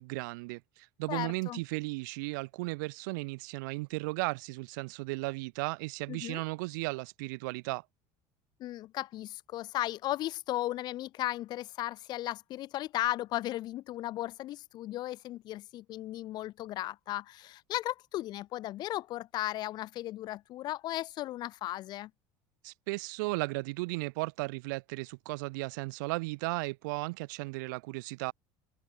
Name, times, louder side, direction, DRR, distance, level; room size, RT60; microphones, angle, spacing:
voice 1, 0.0-7.8 22.6-28.3, right 25 dB, 90° right, 0.8 m, -35 dB
voice 2, 1.1-1.6 6.1-6.4 8.6-22.1, left 15 dB, 45° left, 1.2 m, -36 dB
open air
cardioid pair, 150°, 10 cm